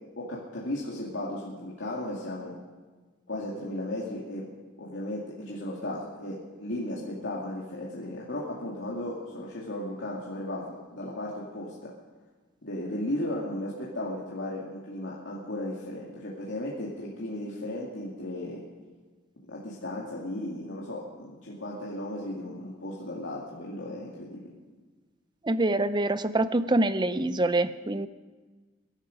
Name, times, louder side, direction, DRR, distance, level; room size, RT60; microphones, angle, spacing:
voice 1, 0.2-2.5 3.3-4.5 4.8-11.9 12.6-18.6 19.5-24.4, left 1 dB, 75° left, -5 dB, 2.4 m, -35 dB
voice 2, 25.4-28.1, right 2 dB, 25° right, 13 dB, 0.6 m, -25 dB
22.5 x 12.0 x 5.2 m, 1.3 s
head